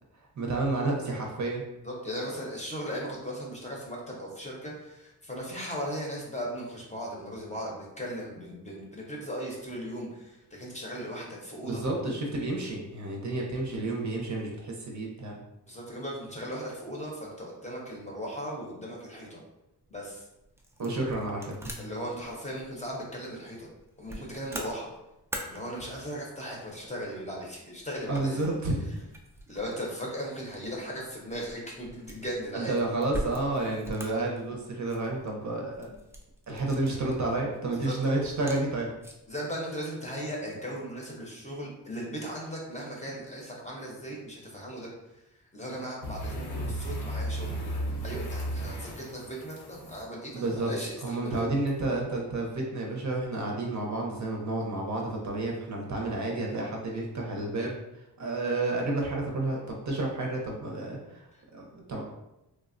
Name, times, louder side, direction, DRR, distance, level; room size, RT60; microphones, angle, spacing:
voice 1, 0.4-1.6 11.6-15.4 20.8-21.9 28.1-28.8 32.5-35.9 36.5-38.9 50.3-50.7 51.0-57.7 58.2-61.2 61.5-62.0, right 2 dB, 45° right, -1 dB, 0.6 m, -30 dB
voice 2, 1.8-11.8 15.6-19.4 19.9-20.2 21.8-23.7 24.0-24.9 25.4-28.5 29.5-32.7 37.8-38.0 39.3-44.9 45.5-47.6 48.0-51.5 61.3-61.4, equal, 20° left, -3 dB, 0.7 m, -37 dB
sound 1, 19.8-39.4, right 1 dB, 5° right, 0.3 m, -45 dB
sound 2, 46.0-50.0 51.7-51.8, right 1 dB, 80° left, 0.7 m, -34 dB
3.2 x 2.1 x 2.5 m, 0.91 s
wide cardioid pair, 105°, 39 cm